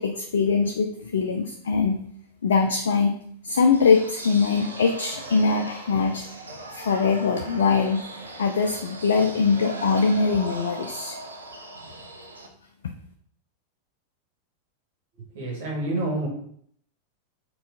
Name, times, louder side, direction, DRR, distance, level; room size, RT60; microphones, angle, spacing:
voice 1, 0.0-2.0 2.4-3.2 3.4-6.2 6.7-8.0 8.4-11.1 12.8-12.9, left 5 dB, 65° left, 4 dB, 0.3 m, -22 dB
sound 1, 3.7-12.5, right 1 dB, 75° right, 0.5 m, -39 dB
voice 2, 15.3-16.3, right 2 dB, 55° right, -3 dB, 1.1 m, -28 dB
4.3 x 2.4 x 3.6 m, 0.64 s
figure-of-eight pair, 90°, 0 cm